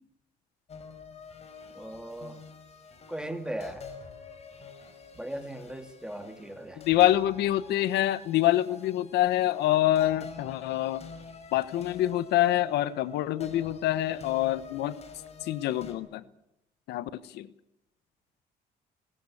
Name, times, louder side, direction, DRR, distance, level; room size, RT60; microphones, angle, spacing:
sound 1, 0.7-15.9, left 5 dB, 40° left, 4.8 m, -47 dB
voice 1, 1.7-2.4 3.1-3.9 5.1-6.8, right 1 dB, 5° right, 2.6 m, -38 dB
voice 2, 6.8-11.0 11.5-15.0 15.4-16.2 16.9-17.5, left 13 dB, 80° left, 1.2 m, -26 dB
20.0 x 19.5 x 8.6 m
cardioid pair, 110°, 17 cm